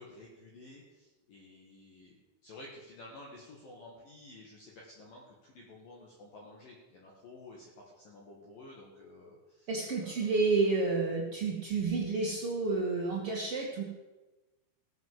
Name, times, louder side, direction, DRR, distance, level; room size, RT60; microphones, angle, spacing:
voice 1, 0.0-2.2 2.4-9.7 10.0-10.3, left 2 dB, 55° left, -2 dB, 3.0 m, -52 dB
voice 2, 9.7-13.8, right 3 dB, 65° right, -3 dB, 1.4 m, -30 dB
16.5 x 7.3 x 7.6 m, 1.1 s
omnidirectional pair, 5.7 m